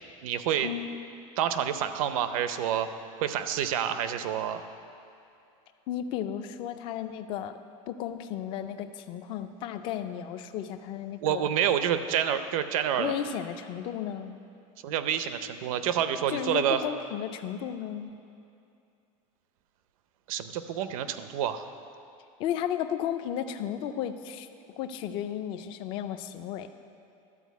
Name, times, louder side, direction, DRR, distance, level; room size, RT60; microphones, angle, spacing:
voice 1, 0.2-0.7 1.4-2.9 3.2-4.6 11.2-13.1 14.8-16.8 20.3-21.6, right 9 dB, 75° right, 10 dB, 0.7 m, -28 dB
voice 2, 5.9-7.6 7.9-11.5 13.0-14.4 16.3-18.1 22.4-24.5 24.8-26.7, left 9 dB, 30° left, 9 dB, 0.4 m, -34 dB
12.5 x 4.7 x 8.2 m, 2.6 s
supercardioid pair, 180°, 18 cm